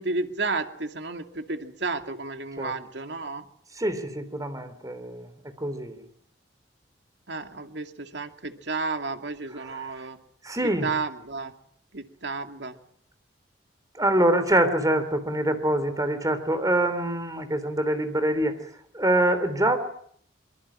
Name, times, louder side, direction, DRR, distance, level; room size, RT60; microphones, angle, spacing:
voice 1, 0.0-3.5 7.3-10.2 10.6-11.5 11.9-12.7, right 3 dB, 75° right, 7 dB, 2.5 m, -32 dB
voice 2, 3.8-5.3 5.6-6.0 9.6-9.9 10.4-10.9 13.9-18.5 18.9-19.8, right 1 dB, 20° right, 11 dB, 3.3 m, -25 dB
24.5 x 24.0 x 8.6 m, 0.64 s
head